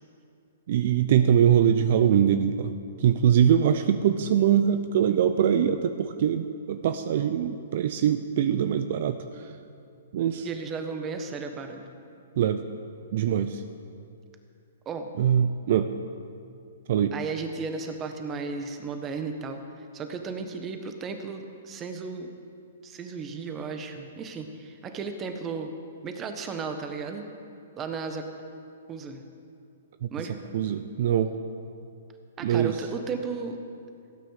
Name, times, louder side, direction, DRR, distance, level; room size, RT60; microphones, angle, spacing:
voice 1, 0.7-2.7 3.0-9.2 10.1-10.5 12.4-12.6 13.1-13.6 15.2-15.9 16.9-17.1 30.0-31.3 32.4-32.7, right 9 dB, 55° right, 9 dB, 0.6 m, -23 dB
voice 2, 10.4-11.9 14.8-15.1 17.1-19.6 19.9-22.3 22.8-25.7 26.0-27.3 27.8-28.3 28.9-29.2 30.1-30.4 32.4-33.6, right 4 dB, 20° right, 6 dB, 1.3 m, -34 dB
16.5 x 9.3 x 6.6 m, 2.5 s
hypercardioid pair, 145°, 0 cm